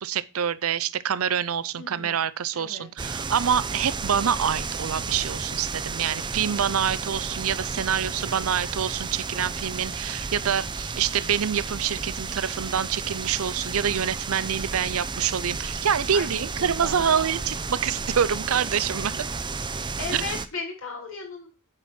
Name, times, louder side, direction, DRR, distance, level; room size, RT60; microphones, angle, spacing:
voice 1, 0.0-19.2 20.1-20.2, right 8 dB, 75° right, 0.5 m, -26 dB
voice 2, 1.8-2.2 2.5-2.9 16.1-17.6 20.0-21.5, left 3 dB, 65° left, 2.7 m, -36 dB
sound 1, 3.0-20.5, right 4 dB, 20° right, 0.5 m, -32 dB
8.9 x 4.4 x 6.0 m
head